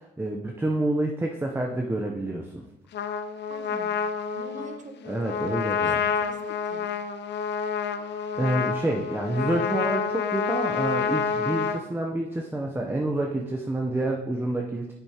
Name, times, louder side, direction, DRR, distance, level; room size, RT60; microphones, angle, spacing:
voice 1, 0.0-2.7 5.1-6.0 8.4-14.9, right 1 dB, 10° right, 1 dB, 0.7 m, -28 dB
Trumpet, 2.9-11.8, left 6 dB, 60° left, 0.6 m, -28 dB
voice 2, 3.5-6.9, right 3 dB, 40° right, 5 dB, 1.2 m, -46 dB
8.2 x 6.8 x 2.9 m, 0.92 s
cardioid pair, 90°, 20 cm